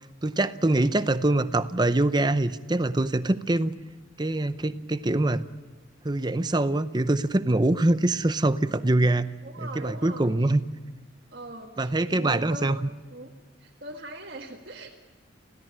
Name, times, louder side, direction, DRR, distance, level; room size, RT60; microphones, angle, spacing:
voice 1, 0.2-3.7 4.2-5.5 6.0-9.3 9.6-10.7 11.8-12.8, right 2 dB, 20° right, 12 dB, 0.7 m, -24 dB
voice 2, 9.4-10.3 11.3-12.7 13.1-13.3 13.6-15.0, right 1 dB, 50° right, -3 dB, 2.1 m, -40 dB
27.5 x 17.0 x 8.9 m, 1.3 s
head